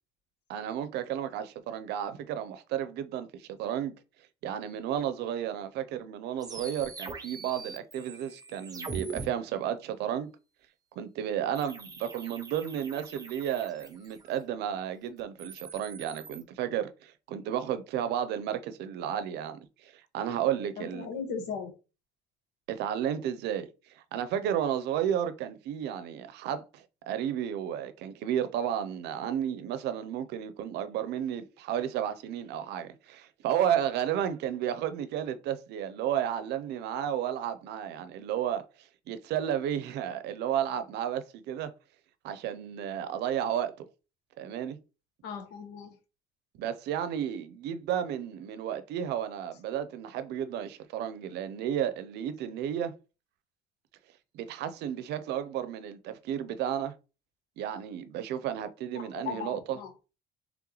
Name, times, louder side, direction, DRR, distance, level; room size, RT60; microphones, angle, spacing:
voice 1, 0.5-3.9 4.4-10.3 11.0-21.1 22.7-23.7 23.9-41.7 42.2-43.9 44.4-44.8 46.6-52.9 54.3-56.9 57.6-59.8, right 10 dB, 80° right, 0.6 m, -32 dB
sound 1, 6.4-9.3 11.6-14.4 15.2-16.4, right 4 dB, 20° right, 0.8 m, -43 dB
voice 2, 20.8-21.7 45.2-45.9 58.9-59.9, left 6 dB, 90° left, 1.3 m, -37 dB
3.7 x 3.5 x 3.0 m
cardioid pair, 110°, 17 cm